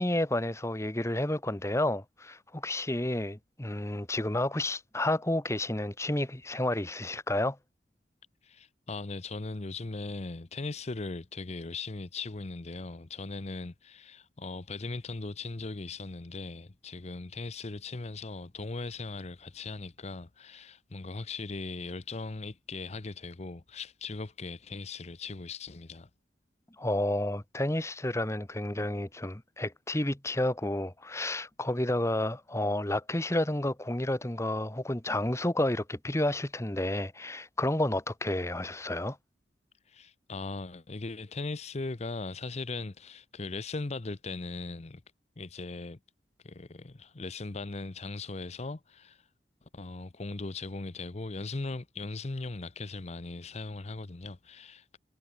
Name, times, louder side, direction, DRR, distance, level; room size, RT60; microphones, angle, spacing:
voice 1, 0.0-7.6 26.8-39.2, left 1 dB, 15° left, 1.5 m, -30 dB
voice 2, 8.4-26.1 39.9-45.0 45.4-46.0 46.4-49.3 49.7-55.0, left 3 dB, 40° left, 0.7 m, -39 dB
head